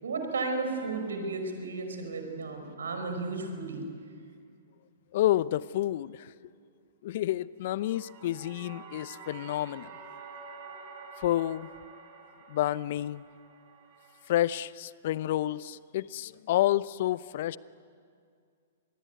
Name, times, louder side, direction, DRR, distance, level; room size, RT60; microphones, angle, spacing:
voice 1, 0.0-3.8, right 3 dB, 75° right, 4 dB, 5.2 m, -33 dB
voice 2, 5.1-6.3 7.0-9.9 11.2-11.7 12.5-13.3 14.3-17.6, left 13 dB, 55° left, 18 dB, 0.7 m, -29 dB
sound 1, 7.6-14.6, right 5 dB, 45° right, 5.0 m, -49 dB
25.5 x 21.0 x 9.4 m, 2.3 s
hypercardioid pair, 115°, 0 cm